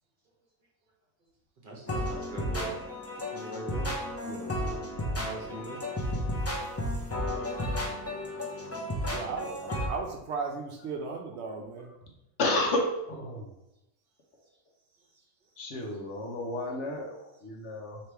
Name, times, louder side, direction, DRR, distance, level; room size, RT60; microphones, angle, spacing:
voice 1, 1.6-2.8 3.3-3.9 5.1-5.8 11.6-11.7, right 2 dB, 45° right, -2 dB, 1.0 m, -41 dB
sound 1, 1.9-9.9, left 1 dB, 25° left, 0.3 m, -33 dB
voice 2, 4.2-5.2 9.1-11.9, right 4 dB, 65° right, 2 dB, 0.8 m, -37 dB
voice 3, 12.4-13.5 15.6-18.0, left 1 dB, 65° left, 1 dB, 1.0 m, -31 dB
3.3 x 2.9 x 4.4 m, 0.92 s
omnidirectional pair, 1.4 m